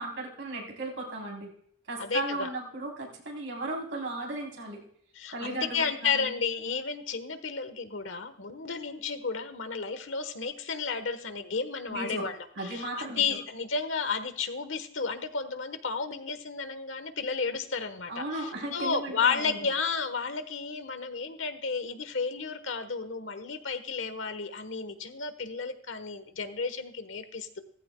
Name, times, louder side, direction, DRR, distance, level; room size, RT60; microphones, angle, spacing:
voice 1, 0.0-1.5 1.9-4.8 5.3-6.3 11.9-12.3 12.6-13.2 18.1-19.6, right 2 dB, 80° right, 1 dB, 3.6 m, -36 dB
voice 2, 2.0-2.5 5.1-27.6, left 5 dB, 80° left, 10 dB, 1.2 m, -32 dB
16.0 x 14.5 x 2.2 m, 0.66 s
head